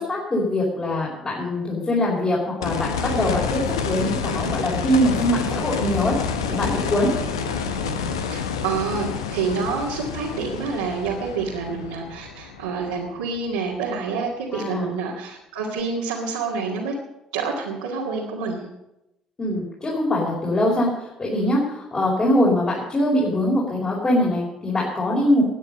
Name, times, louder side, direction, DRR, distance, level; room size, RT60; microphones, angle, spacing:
voice 1, 0.0-6.2 6.5-7.1 14.5-14.9 19.4-25.4, left 1 dB, 30° left, -4 dB, 4.7 m, -22 dB
sound 1, 2.6-13.5 15.8-15.9, left 6 dB, 80° left, 1.0 m, -28 dB
voice 2, 8.3-17.0 17.3-18.7, right 5 dB, 80° right, -6 dB, 2.2 m, -28 dB
18.5 x 9.6 x 5.5 m, 0.90 s
figure-of-eight pair, 50°, 3 cm